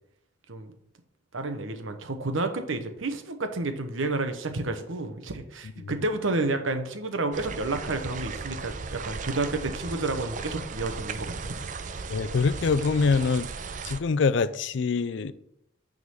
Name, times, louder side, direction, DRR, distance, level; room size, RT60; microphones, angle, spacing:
voice 1, 1.3-11.6, right 2 dB, 85° right, 1.0 m, -30 dB
sound 1, 7.3-14.0, right 4 dB, 40° right, 0.5 m, -36 dB
voice 2, 12.1-13.5 13.8-15.3, left 4 dB, 65° left, 0.4 m, -24 dB
9.3 x 3.9 x 5.6 m
head